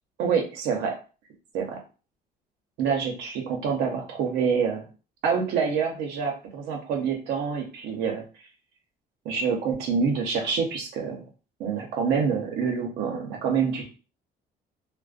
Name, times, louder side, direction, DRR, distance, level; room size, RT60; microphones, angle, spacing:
voice 1, 0.2-0.9 1.5-1.8 2.8-4.8 5.2-8.2 9.2-11.2 11.6-13.9, right 6 dB, 85° right, 2 dB, 0.8 m, -26 dB
2.4 x 2.1 x 2.4 m, 0.34 s
cardioid pair, 110°, 17 cm